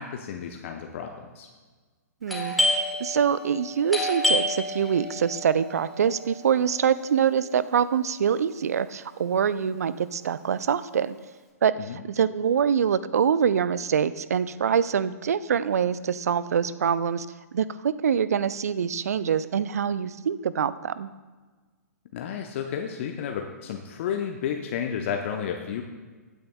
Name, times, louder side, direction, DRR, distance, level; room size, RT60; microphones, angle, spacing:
voice 1, 0.0-1.5 11.9-12.0 22.1-25.8, left 8 dB, 45° left, 4 dB, 0.7 m, -32 dB
voice 2, 2.2-2.5 3.0-11.2 11.6-11.7 12.1-17.3 17.5-21.1, right 7 dB, 65° right, 16 dB, 0.4 m, -24 dB
Doorbell, 2.3-7.7, left 1 dB, ahead, 1.9 m, -29 dB
15.5 x 9.2 x 2.3 m, 1.4 s
figure-of-eight pair, 115°, 9 cm